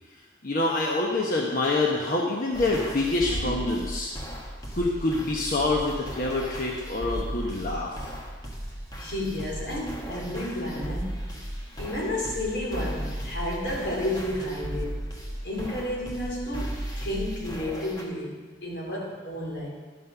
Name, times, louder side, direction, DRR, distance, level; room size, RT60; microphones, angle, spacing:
voice 1, 0.1-4.4 4.7-8.1, left 2 dB, 50° left, -2 dB, 1.0 m, -27 dB
sound 1, 2.5-18.0, right 1 dB, 20° left, 1.3 m, -36 dB
voice 2, 3.3-3.8 9.0-11.3 11.8-15.0 15.4-19.7, left 1 dB, 85° left, -3 dB, 3.1 m, -32 dB
11.5 x 5.9 x 5.6 m, 1.4 s
head